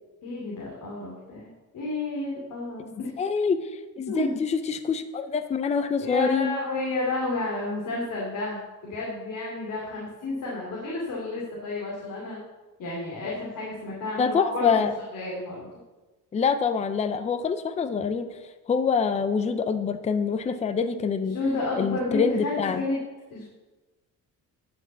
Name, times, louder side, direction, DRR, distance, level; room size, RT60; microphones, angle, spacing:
voice 1, 0.2-3.2 4.1-4.4 6.0-12.4 12.8-14.9 15.1-15.7 21.2-23.0 23.3-23.4, left 2 dB, 65° left, -4 dB, 2.7 m, -31 dB
voice 2, 2.9-3.7 4.0-6.5 14.2-14.9 16.3-18.3 18.7-21.4 21.8-22.8, left 6 dB, 20° left, 10 dB, 0.5 m, -25 dB
10.5 x 5.8 x 7.1 m, 1.2 s
cardioid pair, 165°, 35 cm